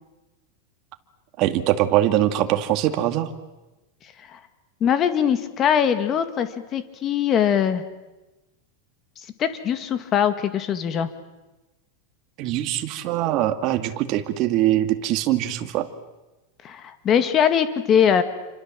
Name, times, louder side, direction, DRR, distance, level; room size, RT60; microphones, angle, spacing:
voice 1, 1.4-3.3 12.4-15.9, right 13 dB, 40° right, 8 dB, 2.1 m, -22 dB
voice 2, 4.8-7.8 9.4-11.1 16.6-18.2, left 8 dB, 25° left, 10 dB, 2.0 m, -21 dB
29.5 x 25.5 x 7.6 m, 1.1 s
supercardioid pair, 155°, 0 cm